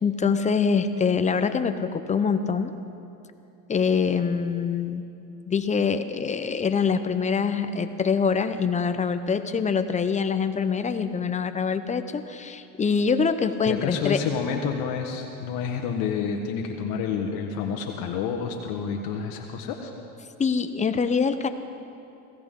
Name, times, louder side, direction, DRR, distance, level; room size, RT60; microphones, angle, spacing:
voice 1, 0.0-2.7 3.7-5.0 5.5-14.2 20.4-21.5, left 5 dB, 20° left, 10 dB, 0.7 m, -24 dB
voice 2, 13.7-19.9, left 6 dB, 65° left, 2 dB, 1.4 m, -29 dB
21.5 x 16.5 x 3.7 m, 2.7 s
supercardioid pair, 120°, 38 cm